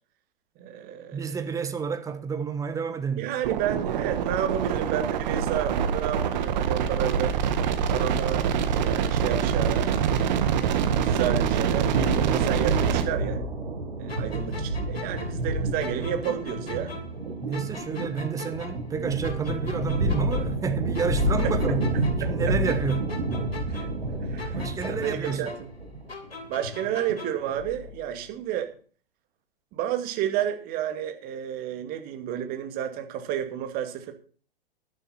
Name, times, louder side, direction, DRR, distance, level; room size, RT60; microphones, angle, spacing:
voice 1, 0.6-1.4 3.2-7.4 7.9-9.9 10.4-13.4 14.0-16.9 21.4-21.6 22.2-22.3 23.7-23.9 24.3-25.5 26.5-28.7 29.7-34.1, right 10 dB, 30° right, 2.3 m, -31 dB
voice 2, 1.1-3.4 14.3-14.4 17.4-21.9 22.2-23.1 24.5-25.5, right 6 dB, 10° right, 1.1 m, -30 dB
sound 1, 3.4-13.0, right 7 dB, 45° right, 1.8 m, -25 dB
sound 2, 11.9-28.1, right 1 dB, 70° right, 5.7 m, -29 dB
sound 3, 14.1-17.2 17.5-20.7 20.9-24.1 24.4-27.5, left 3 dB, 75° left, 3.8 m, -41 dB
12.5 x 11.5 x 4.3 m
figure-of-eight pair, 105°, 31 cm